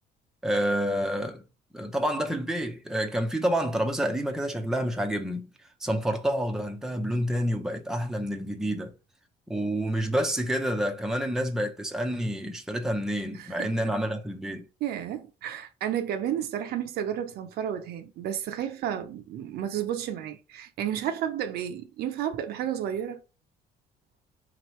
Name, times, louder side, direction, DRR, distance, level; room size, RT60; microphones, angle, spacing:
voice 1, 0.4-1.4 1.7-5.5 5.8-8.9 9.5-14.7, equal, 5° right, 0.6 m, -28 dB
voice 2, 13.4-13.9 14.8-23.2, right 10 dB, 70° right, 0.7 m, -32 dB
4.0 x 3.0 x 3.1 m
cardioid pair, 110°, 17 cm